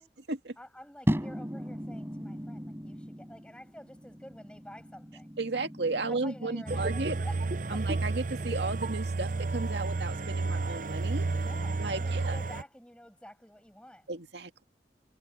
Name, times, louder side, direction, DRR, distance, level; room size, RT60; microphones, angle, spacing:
voice 1, 0.6-5.3 6.1-7.4 7.7-7.8 11.3-14.1, equal, 5° left, 7.3 m, -49 dB
sound 1, 1.1-7.3, equal, 15° right, 6.0 m, -37 dB
voice 2, 5.4-7.2 7.7-11.3 11.8-12.4 14.1-14.6, right 3 dB, 80° right, 2.1 m, -34 dB
sound 2, 6.7-12.6, right 3 dB, 45° right, 0.6 m, -31 dB
head